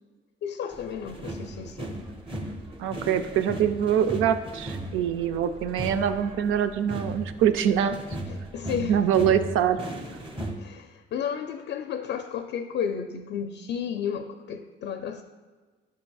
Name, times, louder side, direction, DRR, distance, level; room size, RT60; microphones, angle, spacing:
voice 1, 0.4-2.0 8.3-8.9 10.6-15.2, left 8 dB, 65° left, 7 dB, 0.5 m, -33 dB
sound 1, 0.7-10.5, right 1 dB, 25° right, 1.1 m, -37 dB
voice 2, 2.8-8.0 8.8-9.8, right 9 dB, 90° right, 10 dB, 0.5 m, -24 dB
10.5 x 6.0 x 2.3 m, 1.4 s
cardioid pair, 90°, 20 cm